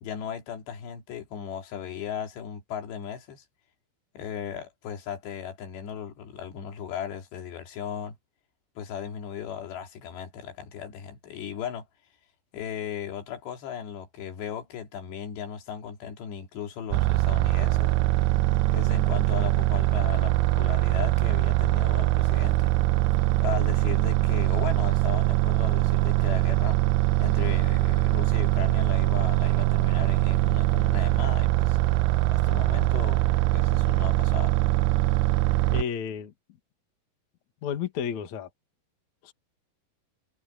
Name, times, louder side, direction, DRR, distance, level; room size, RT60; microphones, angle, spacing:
voice 1, 0.0-3.4 4.1-8.2 8.8-11.9 12.5-17.9 18.7-22.6 23.4-26.8 27.2-31.8 32.3-34.5, left 8 dB, 80° left, 4.7 m, -36 dB
sound 1, 16.9-35.8, right 17 dB, 85° right, 2.7 m, -23 dB
voice 2, 35.7-36.3 37.6-38.5 39.2-39.3, left 8 dB, 50° left, 2.8 m, -32 dB
omnidirectional pair, 4.9 m